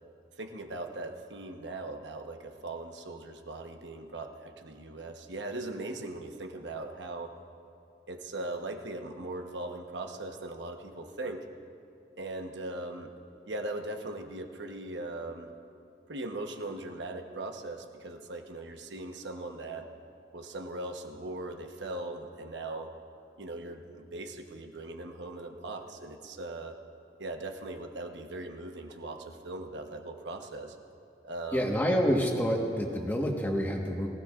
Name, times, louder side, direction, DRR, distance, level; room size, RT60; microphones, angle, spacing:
voice 1, 0.4-7.3 8.1-11.4 12.2-13.1 13.5-15.5 16.1-19.9 20.3-22.9 23.4-26.8 27.2-30.7 31.2-31.8, right 2 dB, 90° right, 4 dB, 1.1 m, -39 dB
voice 2, 31.5-34.1, equal, 10° left, 0 dB, 1.4 m, -28 dB
22.5 x 16.0 x 2.5 m, 2.5 s
head